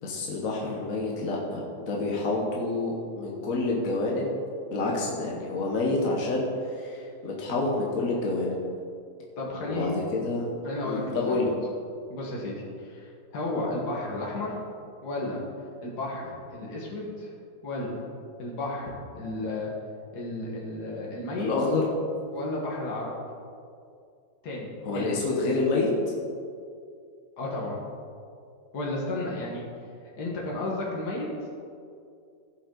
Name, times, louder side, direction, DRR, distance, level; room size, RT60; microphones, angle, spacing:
voice 1, 0.0-4.4 4.7-6.5 6.8-8.6 9.6-10.5 10.8-11.5 21.4-21.9 24.8-25.9, left 3 dB, 60° left, -3 dB, 1.5 m, -28 dB
voice 2, 9.4-9.9 10.6-11.5 12.1-14.6 15.0-15.4 15.8-17.3 17.6-18.0 18.4-19.7 20.1-21.5 22.3-23.1 24.4-25.2 27.4-27.8 28.7-29.6 30.2-31.3, left 2 dB, 80° left, -4 dB, 2.1 m, -33 dB
16.0 x 5.4 x 3.9 m, 2.4 s
omnidirectional pair, 1.7 m